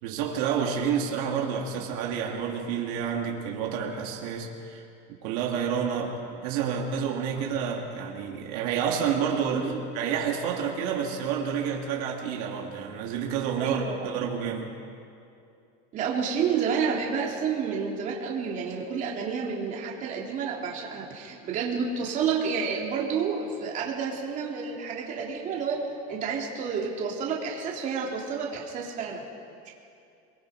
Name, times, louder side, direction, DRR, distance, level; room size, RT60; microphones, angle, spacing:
voice 1, 0.0-4.8 5.2-14.8, right 7 dB, 75° right, -1 dB, 3.1 m, -29 dB
voice 2, 13.6-14.1 15.9-25.8 26.1-29.2, right 6 dB, 40° right, -2 dB, 3.2 m, -30 dB
28.0 x 21.5 x 5.2 m, 2.5 s
cardioid pair, 150°, 20 cm